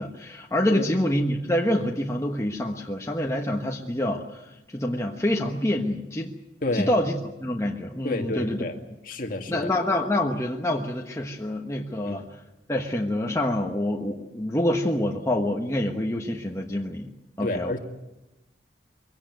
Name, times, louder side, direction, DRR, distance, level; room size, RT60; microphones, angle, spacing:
voice 1, 0.0-6.3 6.7-8.7 9.5-12.3 12.7-17.1 17.4-17.8, left 1 dB, 15° left, 1 dB, 1.2 m, -26 dB
voice 2, 6.6-7.0 8.0-8.8 9.0-9.7 12.0-12.2 17.4-17.8, left 2 dB, 50° left, 3 dB, 2.2 m, -29 dB
23.0 x 17.0 x 9.3 m, 0.97 s
head